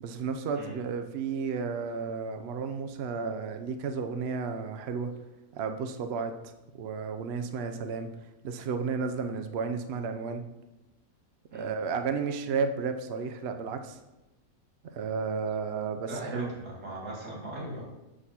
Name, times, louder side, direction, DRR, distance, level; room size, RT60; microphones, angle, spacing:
voice 1, 0.0-5.1 5.5-6.3 6.7-8.1 8.4-10.4 11.5-14.0 14.9-16.5, right 5 dB, 60° right, 7 dB, 0.7 m, -32 dB
voice 2, 16.1-17.8, right 1 dB, 80° right, -4 dB, 2.9 m, -39 dB
7.4 x 6.3 x 4.3 m, 1.0 s
omnidirectional pair, 1.6 m